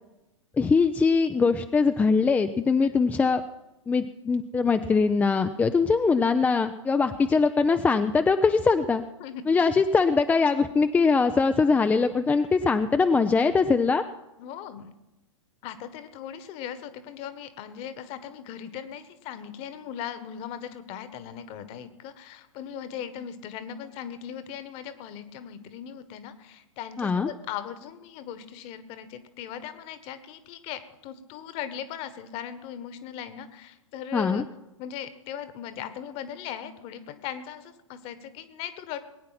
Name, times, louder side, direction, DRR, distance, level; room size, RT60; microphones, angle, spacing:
voice 1, 0.6-3.4 3.9-9.0 9.5-14.0 27.0-27.3 34.1-34.4, left 4 dB, 10° left, 8 dB, 0.5 m, -22 dB
voice 2, 14.4-14.9 15.6-34.4 34.8-39.0, left 9 dB, 35° left, 12 dB, 1.5 m, -39 dB
20.5 x 9.5 x 5.8 m, 0.98 s
figure-of-eight pair, 100°, 16 cm